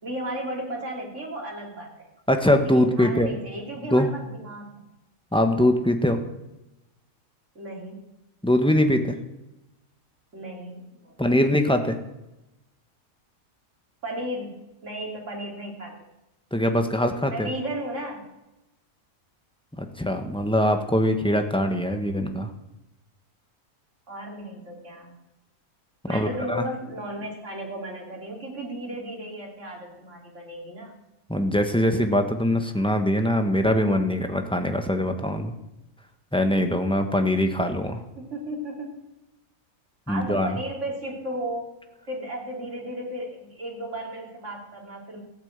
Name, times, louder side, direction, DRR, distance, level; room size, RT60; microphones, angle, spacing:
voice 1, 0.0-2.1 2.6-4.8 7.6-8.1 10.3-11.4 14.0-16.0 17.3-18.3 24.1-25.2 26.1-31.0 38.2-39.0 40.1-41.7 42.1-45.2, right 1 dB, 55° right, -1 dB, 3.5 m, -35 dB
voice 2, 2.3-3.4 3.8-4.1 5.3-6.2 8.4-9.2 11.2-12.0 16.5-17.5 19.8-22.5 26.1-26.6 31.3-35.5 36.3-38.0 40.1-40.5, left 1 dB, 5° left, 5 dB, 1.2 m, -22 dB
15.0 x 9.0 x 8.1 m, 0.95 s
omnidirectional pair, 1.5 m